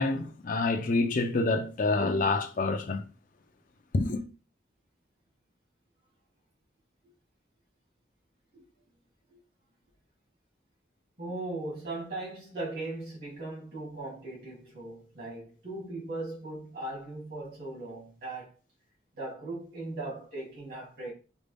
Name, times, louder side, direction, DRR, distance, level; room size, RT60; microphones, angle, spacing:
voice 1, 0.0-3.0 3.9-4.2, left 3 dB, 45° left, 0.4 m, -27 dB
voice 2, 11.2-18.5 19.2-21.1, right 2 dB, 55° right, 2.3 m, -38 dB
5.1 x 2.2 x 3.4 m
head